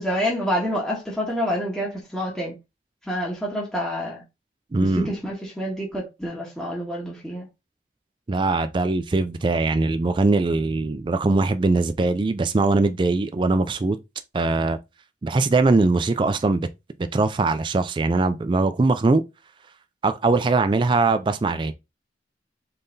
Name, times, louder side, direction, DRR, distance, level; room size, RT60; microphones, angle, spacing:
voice 1, 0.0-2.5 3.0-4.2 4.8-7.5, equal, ahead, 1.4 m, -27 dB
voice 2, 4.7-5.1 8.3-14.0 14.3-14.8 15.2-16.7 17.1-19.2 20.0-21.7, right 3 dB, 25° right, 0.3 m, -21 dB
3.7 x 3.3 x 4.0 m
head